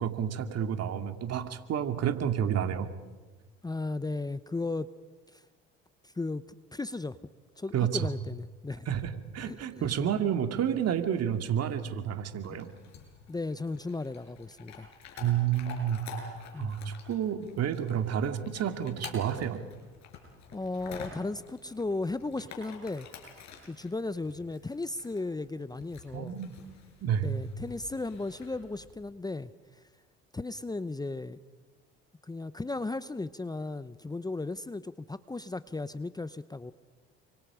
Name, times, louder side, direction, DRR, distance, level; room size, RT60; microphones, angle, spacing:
voice 1, 0.0-2.9 7.7-8.1 8.9-12.7 15.2-19.6 26.1-26.5 27.0-27.3, right 9 dB, 55° right, 7 dB, 2.4 m, -30 dB
voice 2, 3.6-4.9 5.3-5.4 6.0-6.4 6.7-7.2 7.6-8.9 9.4-10.0 12.5-12.6 13.3-14.9 16.5-16.8 20.5-23.1 23.7-26.4 27.2-29.5 30.3-31.4 32.2-36.7, left 3 dB, 10° left, 14 dB, 0.8 m, -35 dB
Chewing mastication / Dog, 12.4-28.9, left 6 dB, 60° left, 6.8 m, -49 dB
30.0 x 25.0 x 5.0 m, 1.4 s
hypercardioid pair, 70°, 31 cm